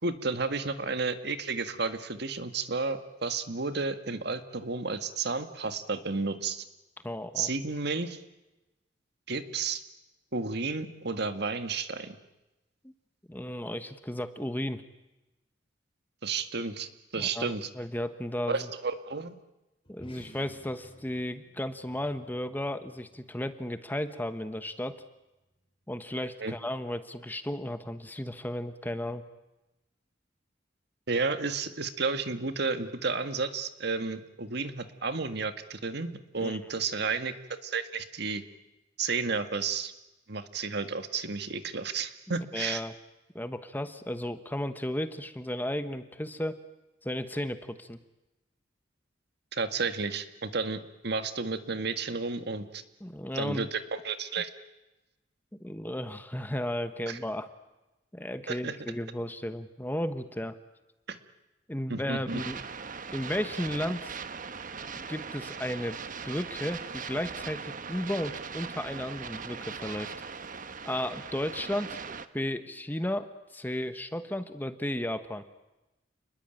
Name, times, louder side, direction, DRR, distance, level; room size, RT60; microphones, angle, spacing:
voice 1, 0.0-6.6 7.3-8.2 9.3-9.8 10.3-12.2 16.2-17.7 18.5-19.3 26.4-26.6 31.1-38.4 39.0-39.9 40.3-42.8 49.5-52.8 53.3-54.5 57.1-57.2 58.5-58.8 61.1-61.2 61.9-62.4, right 4 dB, 60° right, 9 dB, 1.8 m, -32 dB
voice 2, 7.0-7.5 12.8-12.9 13.3-14.8 17.2-18.7 19.9-25.0 25.9-29.2 36.4-36.6 42.5-42.9 43.3-46.6 47.0-48.0 53.0-53.7 55.6-57.5 58.1-60.6 61.7-62.6 63.1-64.1 65.1-66.0 66.2-70.1 70.8-72.0 72.3-73.3 73.5-75.4, left 1 dB, 10° left, 10 dB, 1.2 m, -34 dB
sound 1, 19.8-24.6, equal, 30° left, 4.3 m, -55 dB
sound 2, 62.3-72.3, right 5 dB, 45° right, 1.2 m, -40 dB
29.0 x 21.0 x 9.1 m, 1.0 s
head